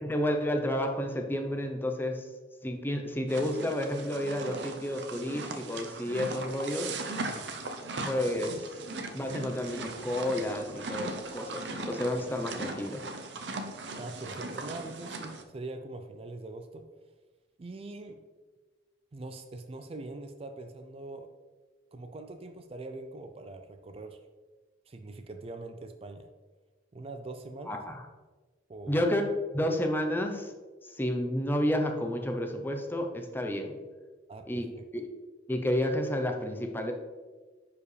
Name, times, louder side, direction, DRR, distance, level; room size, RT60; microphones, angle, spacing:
voice 1, 0.0-2.3 2.6-6.9 8.1-8.6 9.1-13.0 27.7-28.1 28.9-29.2 29.5-30.5 31.0-33.8 34.5-34.7 34.9-35.0 35.5-36.9, left 1 dB, 10° left, 4 dB, 0.7 m, -30 dB
sound 1, 3.3-15.4, right 3 dB, 70° right, 0.7 m, -39 dB
voice 2, 14.0-16.9 17.6-18.2 19.1-21.3 21.9-24.2 24.9-26.3 26.9-27.8 28.7-29.0 34.3-34.8, right 2 dB, 35° right, 7 dB, 0.4 m, -43 dB
9.9 x 4.9 x 3.3 m, 1.4 s
head